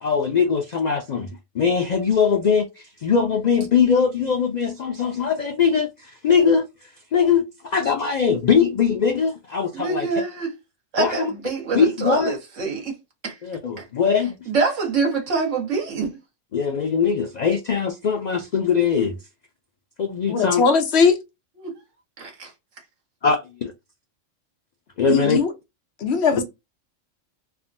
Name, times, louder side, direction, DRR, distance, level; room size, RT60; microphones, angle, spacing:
voice 1, 0.0-10.1 11.0-11.3 11.7-12.4 13.4-14.4 16.5-19.2 20.0-20.6 23.2-23.7 25.0-25.4, left 6 dB, 90° left, 0.3 m, -21 dB
voice 2, 9.7-10.5 10.9-12.9 13.2-13.4 13.8-13.9 14.5-16.2 21.6-21.8 22.2-22.5, right 4 dB, 75° right, 1.4 m, -25 dB
voice 3, 20.3-21.2 25.1-25.5 26.0-26.4, left 5 dB, 60° left, 1.0 m, -19 dB
3.5 x 2.1 x 2.5 m
omnidirectional pair, 1.3 m